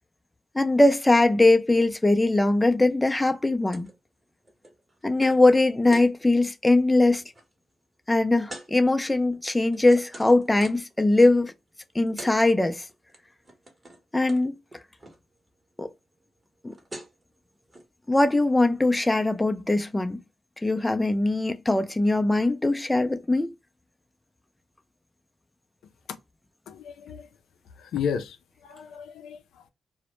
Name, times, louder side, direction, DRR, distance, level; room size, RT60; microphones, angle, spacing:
voice 1, 0.5-3.9 5.0-7.2 8.1-11.5 12.0-12.8 14.1-14.6 15.8-15.9 16.6-16.7 18.1-20.2 20.6-23.5, left 2 dB, 15° left, 0.3 m, -21 dB
sound 1, 3.7-3.9 4.2-6.1 6.6-6.8 7.1-7.4 8.5-8.7 9.3-10.9 11.8-11.9 12.1-12.4 12.6-13.2 13.4-14.0 14.3-14.4 14.7-15.2 16.4-16.5 16.7-17.2 17.7-17.8, right 1 dB, 25° right, 0.9 m, -44 dB
voice 2, 26.7-27.3 27.8-29.7, left 7 dB, 85° left, 0.3 m, -33 dB
2.0 x 2.0 x 2.9 m
cardioid pair, 70°, 0 cm